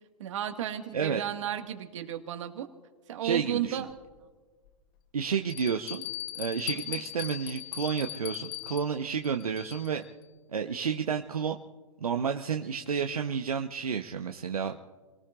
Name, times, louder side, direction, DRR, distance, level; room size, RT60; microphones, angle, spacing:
voice 1, 0.2-2.7 3.1-3.9 6.9-7.0, right 11 dB, 55° right, 6 dB, 1.8 m, -33 dB
voice 2, 3.2-3.8 5.1-6.1 6.3-10.0 10.5-11.6 12.0-14.8, right 6 dB, 75° right, 4 dB, 1.0 m, -31 dB
Bell, 3.9-4.0 4.7-4.8 5.5-10.1, left 14 dB, 40° left, 1.0 m, -39 dB
30.0 x 18.5 x 2.5 m, 1.4 s
figure-of-eight pair, 120°, 19 cm